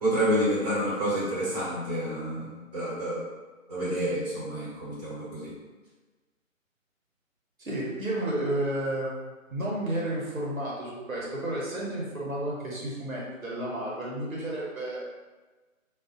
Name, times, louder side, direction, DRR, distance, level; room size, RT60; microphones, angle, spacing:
voice 1, 0.0-3.2 3.7-5.5, equal, 30° right, -10 dB, 1.1 m, -29 dB
voice 2, 7.6-9.2 9.5-15.0, right 1 dB, 80° right, -5 dB, 1.1 m, -31 dB
2.5 x 2.4 x 2.5 m, 1.3 s
figure-of-eight pair, 155°, 41 cm